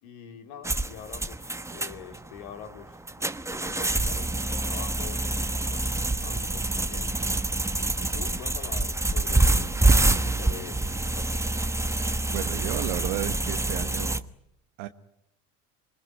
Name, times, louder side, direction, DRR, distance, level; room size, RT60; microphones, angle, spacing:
voice 1, 0.0-5.9 6.2-7.1 8.0-9.8 10.0-11.3, left 8 dB, 65° left, 7 dB, 3.4 m, -45 dB
sound 1, 0.6-14.2, right 2 dB, 5° right, 1.2 m, -26 dB
voice 2, 12.3-14.2 14.8-14.9, right 15 dB, 65° right, 8 dB, 1.4 m, -32 dB
26.5 x 21.5 x 10.0 m, 0.77 s
hypercardioid pair, 70°, 38 cm